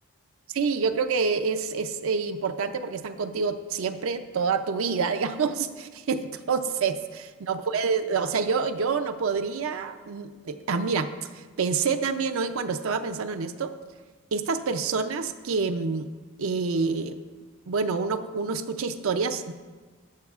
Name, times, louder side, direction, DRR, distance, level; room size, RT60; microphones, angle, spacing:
voice 1, 0.5-13.7 14.3-16.1 16.4-17.2 17.7-19.5, right 5 dB, 75° right, 8 dB, 0.5 m, -27 dB
14.0 x 8.6 x 2.4 m, 1.4 s
head